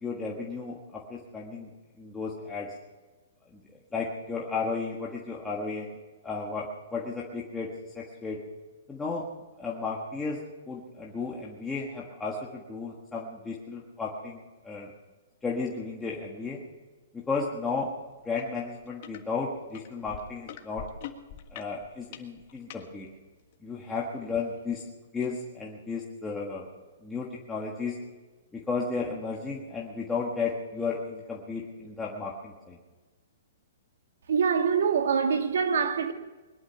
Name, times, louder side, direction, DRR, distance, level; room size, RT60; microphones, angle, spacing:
voice 1, 0.0-1.7 2.0-2.7 3.5-3.6 3.9-6.0 6.2-7.7 7.9-8.4 8.9-9.3 9.6-10.4 10.7-14.9 15.4-16.6 17.1-17.9 18.2-20.9 21.5-23.1 23.6-24.8 25.1-26.7 27.0-28.0 28.7-32.8, left 4 dB, 5° left, 1.4 m, -34 dB
sound 1, 18.4-18.5 18.8-19.2 19.7-22.8 23.5-23.6, left 11 dB, 40° left, 1.5 m, -43 dB
voice 2, 34.3-36.1, right 6 dB, 70° right, 2.0 m, -24 dB
21.5 x 11.5 x 5.8 m
hypercardioid pair, 165°, 0 cm